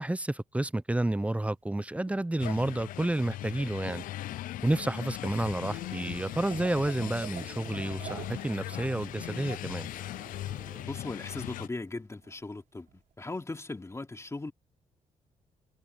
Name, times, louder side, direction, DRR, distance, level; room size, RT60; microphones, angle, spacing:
voice 1, 0.0-4.0 4.6-9.9, right 1 dB, 10° right, 0.7 m, -30 dB
sound 1, 1.2-2.3 2.8-3.5 4.0-4.2 4.5-4.7 5.2-5.3 5.8-9.1 9.5-9.6 11.8-11.9 12.2-12.4 12.9-13.1, right 10 dB, 75° right, 3.6 m, -48 dB
sound 2, 2.4-11.7, left 14 dB, 80° left, 0.5 m, -39 dB
Engine, 5.7-10.9, right 5 dB, 40° right, 7.8 m, -52 dB
voice 2, 10.8-14.5, left 2 dB, 20° left, 3.1 m, -38 dB
cardioid pair, 75°, 14 cm